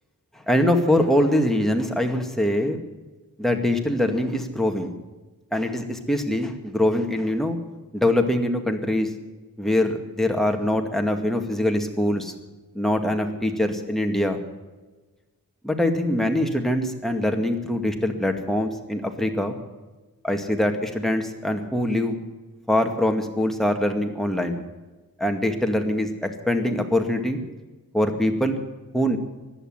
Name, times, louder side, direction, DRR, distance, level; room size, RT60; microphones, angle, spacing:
voice 1, 0.5-2.8 3.4-4.9 5.5-7.6 7.9-9.1 9.6-12.3 12.7-14.4 15.6-19.6 20.2-22.2 22.7-24.6 25.2-27.4 27.9-28.6 28.9-29.2, left 1 dB, ahead, 3 dB, 2.1 m, -23 dB
16.5 x 11.0 x 7.9 m, 1.2 s
wide cardioid pair, 110°, 36 cm